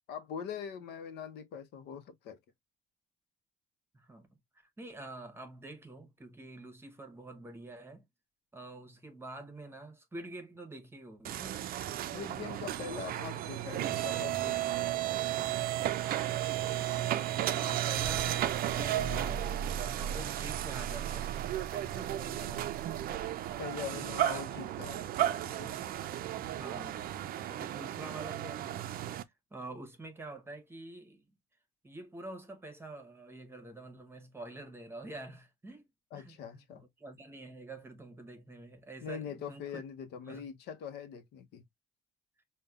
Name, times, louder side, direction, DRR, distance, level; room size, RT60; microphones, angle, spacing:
voice 1, 0.1-2.4 12.1-14.9 23.6-25.9 36.1-36.8 39.0-41.6, left 7 dB, 80° left, 0.7 m, -43 dB
voice 2, 3.9-4.4 4.8-8.0 8.5-11.6 17.5-19.5 19.8-21.4 21.7-22.7 23.8-24.4 26.6-27.1 27.5-28.9 29.5-31.2 31.8-35.9 36.1-36.4 36.7-39.8 40.2-40.5, right 2 dB, 15° right, 0.9 m, -47 dB
sound 1, 11.2-29.2, right 12 dB, 60° right, 0.4 m, -34 dB
5.2 x 2.2 x 2.3 m
cardioid pair, 110°, 17 cm